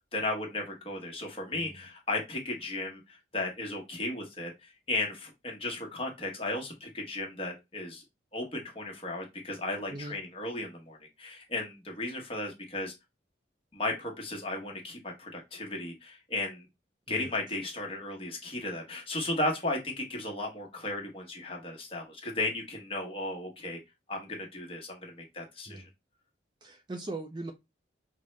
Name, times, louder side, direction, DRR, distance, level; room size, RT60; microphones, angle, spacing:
voice 1, 0.1-8.0 8.3-12.9 13.7-16.6 17.1-23.8 24.1-25.8, left 2 dB, 30° left, 1.0 m, -35 dB
voice 2, 26.6-27.5, right 2 dB, 25° right, 0.4 m, -39 dB
5.1 x 2.1 x 3.1 m
head